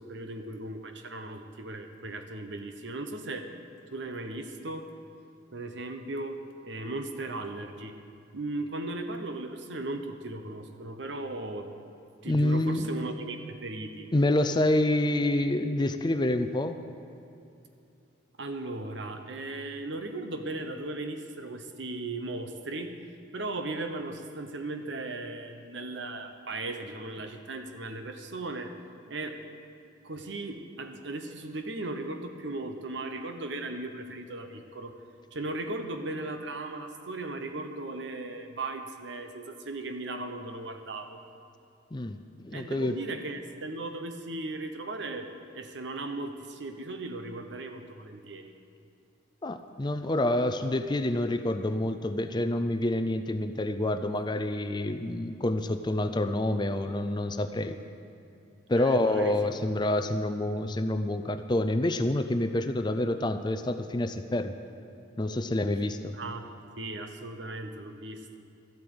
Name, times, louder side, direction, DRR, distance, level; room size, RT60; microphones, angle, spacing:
voice 1, 0.0-3.5 3.9-4.9 5.5-7.9 8.3-11.7 12.2-14.1 18.4-23.0 23.3-28.7 29.1-29.4 30.0-35.0 35.3-41.2 42.5-48.5 58.8-59.3 66.1-66.5 66.8-68.4, right 2 dB, 65° right, 6 dB, 1.0 m, -37 dB
voice 2, 12.3-12.9 14.1-16.8 41.9-42.2 42.4-43.0 49.4-57.8 58.7-64.6 65.2-66.2, left 1 dB, 20° left, 9 dB, 0.5 m, -27 dB
13.5 x 8.6 x 7.8 m, 2.6 s
head